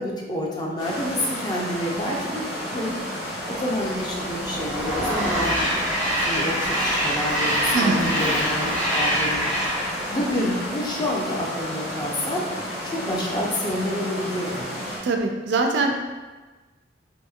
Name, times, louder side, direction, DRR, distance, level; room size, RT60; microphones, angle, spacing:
voice 1, 0.0-2.4 2.7-9.5 10.1-14.7, left 1 dB, 25° left, -2 dB, 0.4 m, -29 dB
sound 1, 0.8-15.0, equal, 75° left, 1.0 m, -32 dB
Train, 3.7-11.2, equal, 40° left, 1.1 m, -26 dB
voice 2, 7.7-8.2 15.0-16.0, right 3 dB, 65° right, 3 dB, 0.3 m, -23 dB
2.8 x 2.7 x 2.3 m, 1.3 s
head